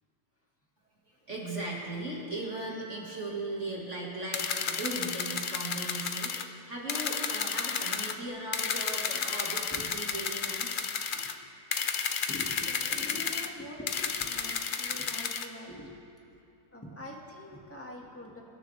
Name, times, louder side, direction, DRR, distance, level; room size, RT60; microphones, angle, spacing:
voice 1, 1.3-10.9, right 2 dB, 45° right, -3 dB, 2.1 m, -38 dB
sound 1, 4.3-6.5 6.9-8.1 8.5-11.3 11.7-13.5 13.9-15.5, left 6 dB, 75° left, 0.4 m, -32 dB
voice 2, 12.3-16.4 16.7-18.4, left 1 dB, 10° left, -2 dB, 1.7 m, -45 dB
25.0 x 12.5 x 3.4 m, 2.8 s
omnidirectional pair, 1.8 m